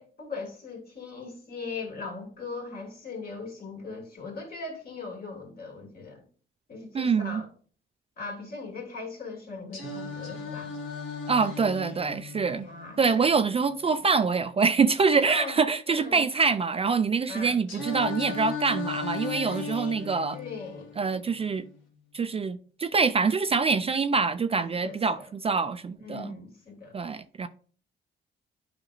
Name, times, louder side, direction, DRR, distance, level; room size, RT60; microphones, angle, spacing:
voice 1, 0.0-6.2 6.7-7.5 8.2-10.7 12.5-13.2 15.1-15.6 15.9-16.2 17.3-17.6 20.3-20.9 24.8-25.3 26.0-27.0, left 3 dB, 50° left, 2.6 m, -39 dB
voice 2, 6.9-7.4 11.3-12.7 13.0-20.4 21.0-21.6 22.1-26.3 26.9-27.5, right 5 dB, 30° right, 0.4 m, -25 dB
Singing, 9.7-13.7 17.7-21.7, left 4 dB, 80° left, 1.8 m, -37 dB
9.0 x 5.1 x 2.5 m
cardioid pair, 90°, 20 cm